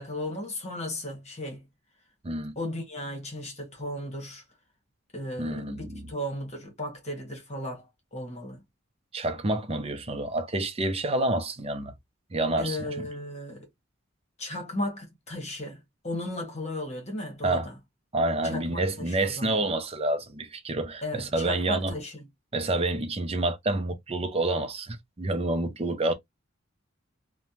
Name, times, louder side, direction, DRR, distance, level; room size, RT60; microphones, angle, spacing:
voice 1, 0.0-1.6 2.5-4.4 5.1-8.6 12.6-13.7 14.4-17.7 18.4-19.5 21.0-22.2, left 1 dB, 35° left, 1.3 m, -35 dB
voice 2, 5.4-6.0 9.1-11.9 12.3-13.1 17.4-17.7 18.1-22.0 22.5-26.1, right 2 dB, 30° right, 0.6 m, -28 dB
3.2 x 2.2 x 2.7 m
head